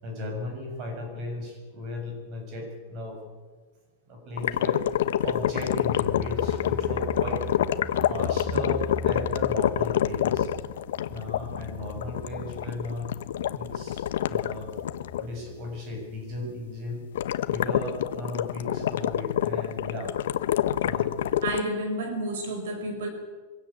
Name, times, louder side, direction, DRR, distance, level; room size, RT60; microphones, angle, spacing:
voice 1, 0.0-3.2 4.1-4.8 5.2-7.4 8.1-10.5 11.1-13.1 13.5-14.7 15.2-17.0 17.5-20.1 20.8-21.1, left 1 dB, 30° right, 2 dB, 6.9 m, -36 dB
sound 1, 4.4-15.3 17.1-21.6, left 11 dB, 80° left, 1.0 m, -27 dB
sound 2, 5.1-15.8 16.1-16.2 16.5-16.6, equal, 5° left, 1.1 m, -41 dB
voice 2, 21.4-23.1, right 1 dB, 80° right, 7 dB, 4.5 m, -30 dB
23.5 x 16.5 x 8.8 m, 1.4 s
supercardioid pair, 175°, 0 cm